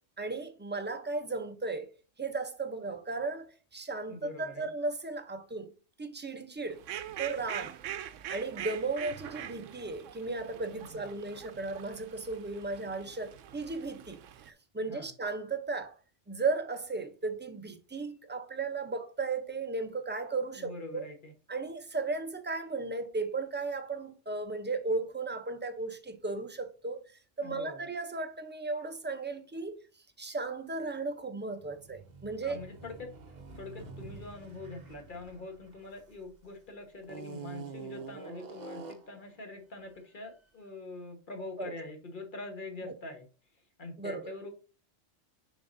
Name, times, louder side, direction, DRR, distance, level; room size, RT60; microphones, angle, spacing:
voice 1, 0.2-1.9 2.2-5.7 6.0-6.8 7.2-7.8 8.3-14.2 14.5-15.9 16.3-21.0 21.5-27.0 27.4-29.7 30.2-32.6 41.6-41.7 44.0-44.3, right 3 dB, 15° right, 0.4 m, -35 dB
voice 2, 4.1-4.7 10.8-11.2 14.8-15.1 20.5-21.3 27.4-27.8 32.4-33.1 33.5-43.3 43.8-44.5, left 2 dB, 40° left, 1.5 m, -44 dB
Fowl, 6.7-14.5, right 11 dB, 80° right, 0.9 m, -43 dB
sound 1, 31.6-36.4 37.0-39.2, right 4 dB, 40° right, 0.8 m, -46 dB
6.9 x 5.3 x 2.6 m
omnidirectional pair, 1.3 m